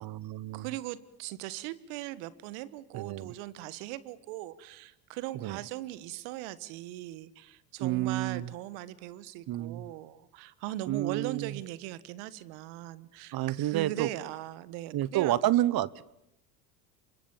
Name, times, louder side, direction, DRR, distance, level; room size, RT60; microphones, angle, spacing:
voice 1, 0.0-0.7 2.9-3.3 5.3-5.6 7.8-8.5 9.5-9.9 10.9-11.6 13.3-14.1 14.9-16.0, right 14 dB, 45° right, 21 dB, 1.1 m, -30 dB
voice 2, 0.5-15.3, right 15 dB, 70° right, 17 dB, 1.7 m, -39 dB
27.5 x 24.5 x 7.4 m, 0.82 s
hypercardioid pair, 80°, 50 cm